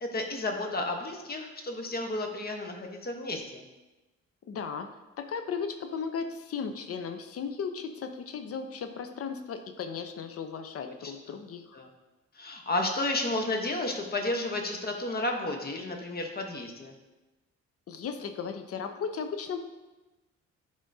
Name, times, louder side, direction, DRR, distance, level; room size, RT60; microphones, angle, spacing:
voice 1, 0.0-3.6 10.8-11.1 11.7-11.9 12.4-16.9, left 2 dB, 30° left, 3 dB, 1.0 m, -32 dB
voice 2, 4.5-4.9 5.2-11.6 17.9-19.6, left 6 dB, 50° left, 7 dB, 0.6 m, -36 dB
9.9 x 3.6 x 2.7 m, 1.1 s
cardioid pair, 90°, 30 cm